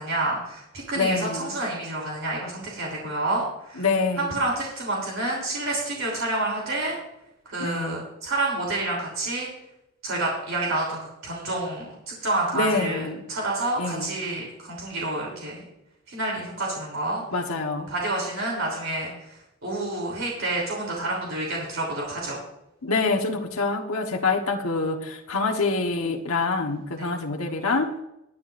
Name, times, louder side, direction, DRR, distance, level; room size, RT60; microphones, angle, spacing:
voice 1, 0.0-3.8 4.2-7.0 7.4-9.5 10.0-15.6 16.1-17.2 17.9-22.4 27.0-27.1, right 2 dB, 70° right, -2 dB, 3.4 m, -29 dB
voice 2, 0.9-1.5 3.8-4.4 7.6-8.0 12.5-13.2 13.8-14.1 17.3-17.9 22.8-27.9, left 3 dB, 90° left, 2 dB, 1.3 m, -26 dB
19.5 x 10.0 x 2.6 m, 0.86 s
head